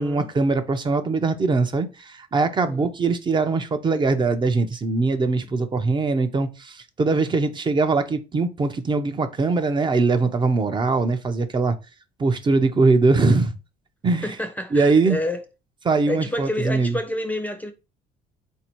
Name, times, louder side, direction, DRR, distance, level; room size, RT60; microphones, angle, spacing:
voice 1, 0.0-11.8 12.2-13.5 14.0-14.3 14.7-15.2 15.9-17.0, right 3 dB, 25° right, 0.6 m, -21 dB
voice 2, 14.2-15.4 16.1-17.7, left 1 dB, 10° left, 0.6 m, -28 dB
4.2 x 2.8 x 4.5 m
cardioid pair, 110°, 17 cm